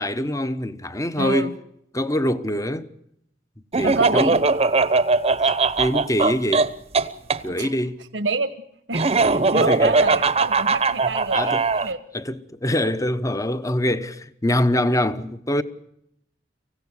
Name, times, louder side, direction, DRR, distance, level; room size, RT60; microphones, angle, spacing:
voice 1, 0.0-1.6 1.9-2.9 3.8-4.4 5.8-6.7 7.4-8.0 9.5-10.0 11.0-15.6, left 1 dB, 20° left, 1.0 m, -24 dB
voice 2, 1.2-1.5 3.8-4.5 7.4-7.7 8.1-8.5 8.9-12.0, right 3 dB, 85° right, 1.3 m, -27 dB
Laughter, 3.7-7.4 8.9-11.9, right 3 dB, 35° right, 0.9 m, -20 dB
25.0 x 16.0 x 8.1 m
head